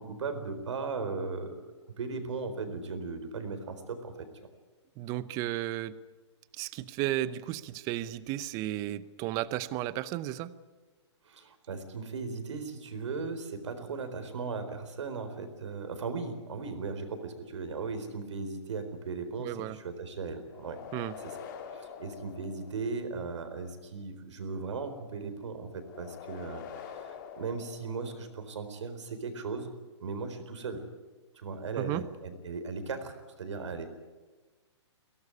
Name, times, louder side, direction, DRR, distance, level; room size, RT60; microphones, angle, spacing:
voice 1, 0.0-1.6 2.0-4.1 11.2-20.8 21.2-21.3 21.7-29.7 30.0-30.8 31.3-33.9, right 4 dB, 75° right, 9 dB, 4.2 m, -37 dB
voice 2, 5.0-6.0 6.5-10.5 19.4-19.8 20.9-21.2 31.8-32.1, right 14 dB, 20° right, 17 dB, 0.7 m, -34 dB
sound 1, 20.5-23.2 25.8-28.5, left 7 dB, 40° left, 2.3 m, -45 dB
22.5 x 17.5 x 9.8 m, 1.3 s
hypercardioid pair, 155°, 15 cm